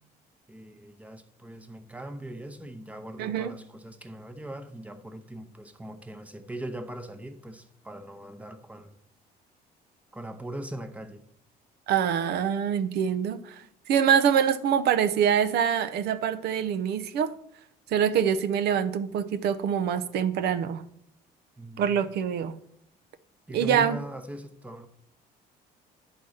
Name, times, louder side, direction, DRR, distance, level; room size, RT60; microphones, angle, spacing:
voice 1, 0.5-9.0 10.1-11.3 21.6-22.1 23.5-24.9, right 1 dB, 10° right, 0.8 m, -40 dB
voice 2, 3.2-3.6 11.9-17.3 17.9-20.8 21.8-22.6 23.5-24.0, right 8 dB, 75° right, 0.7 m, -25 dB
9.9 x 4.1 x 6.4 m
cardioid pair, 110°, 17 cm